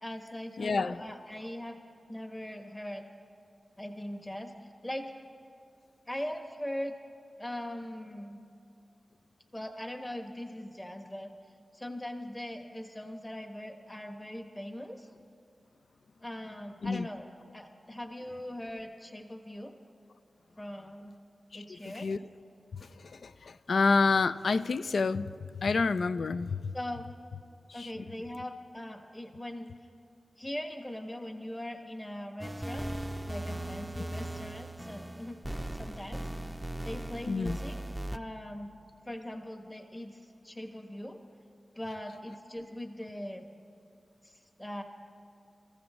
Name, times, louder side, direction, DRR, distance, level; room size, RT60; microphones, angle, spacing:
voice 1, 0.0-1.8 2.1-3.0 3.8-4.5 4.8-5.1 6.1-6.9 7.4-8.4 9.5-11.3 11.7-15.1 16.2-17.2 17.5-19.7 20.6-21.2 21.5-22.1 26.7-27.1 27.7-29.7 30.4-32.9 33.2-36.2 36.8-37.8 38.1-38.7 39.0-41.2 41.7-43.4 44.2-44.8, left 1 dB, 20° left, 1.3 m, -40 dB
voice 2, 0.6-1.0 16.8-17.1 21.5-22.2 22.7-25.3 25.6-26.7 27.8-27.9 37.3-37.6, left 4 dB, 80° left, 0.4 m, -29 dB
sound 1, 32.4-38.2, right 1 dB, 5° right, 0.6 m, -38 dB
28.0 x 14.5 x 3.2 m
cardioid pair, 55°, 0 cm